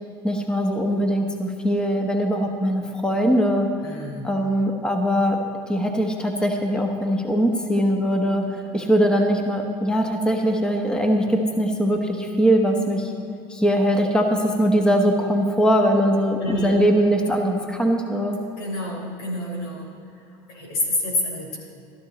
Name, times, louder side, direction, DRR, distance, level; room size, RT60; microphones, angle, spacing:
voice 1, 0.2-3.7 4.2-5.4 5.7-13.1 13.5-18.4, equal, 5° left, 3 dB, 1.2 m, -21 dB
voice 2, 3.8-4.3 16.4-16.7 18.6-19.9 20.5-21.6, left 1 dB, 90° left, -1 dB, 3.7 m, -28 dB
14.5 x 12.5 x 4.2 m, 2.7 s
supercardioid pair, 115°, 12 cm